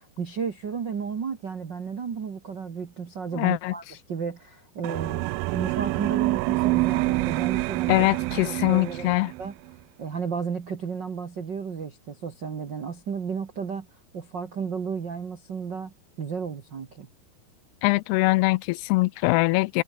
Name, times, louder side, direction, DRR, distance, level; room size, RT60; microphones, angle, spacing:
voice 1, 0.0-8.1 8.4-9.6 10.0-13.9 14.1-17.1, right 6 dB, 60° right, 1.1 m, -33 dB
voice 2, 3.4-3.7 7.9-9.3 17.8-19.8, left 22 dB, 85° left, 2.5 m, -22 dB
sound 1, 4.8-9.5, right 22 dB, 85° right, 2.1 m, -26 dB
omnidirectional pair, 4.8 m